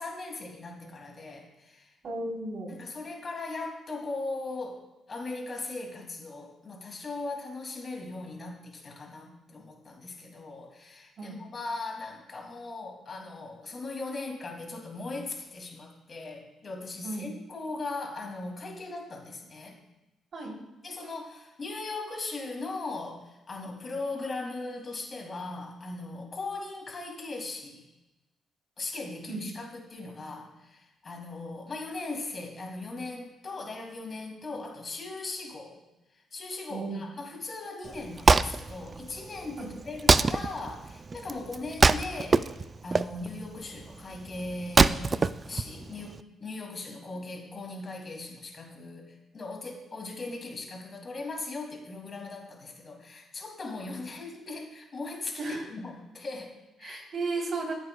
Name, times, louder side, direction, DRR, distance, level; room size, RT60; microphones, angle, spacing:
voice 1, 0.0-1.9 2.7-4.8 5.1-19.8 20.8-27.9 28.8-35.8 36.1-42.5 42.8-55.4 55.7-57.0, left 3 dB, 40° left, 1 dB, 2.6 m, -39 dB
voice 2, 2.0-2.8 11.2-11.4 17.0-17.3 20.3-20.5 29.3-29.4 36.7-37.0 39.6-39.7 55.4-55.7 56.8-57.7, right 3 dB, 50° right, -1 dB, 3.5 m, -34 dB
Wood, 37.8-46.2, right 4 dB, 30° right, 0.3 m, -25 dB
15.0 x 7.9 x 2.3 m, 1.0 s
cardioid pair, 90°, 0 cm